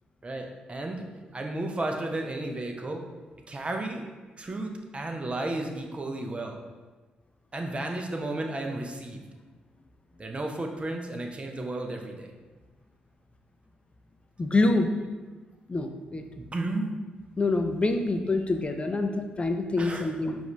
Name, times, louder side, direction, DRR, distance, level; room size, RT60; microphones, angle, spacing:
voice 1, 0.2-1.0 1.3-3.1 3.5-4.0 4.4-6.6 7.5-9.2 10.2-12.3 16.5-16.9 19.8-20.1, right 2 dB, 30° right, 2 dB, 0.7 m, -33 dB
voice 2, 14.4-14.9 15.7-16.3 17.4-20.4, left 2 dB, 30° left, 6 dB, 0.5 m, -26 dB
4.9 x 2.6 x 3.3 m, 1.3 s
hypercardioid pair, 45°, 4 cm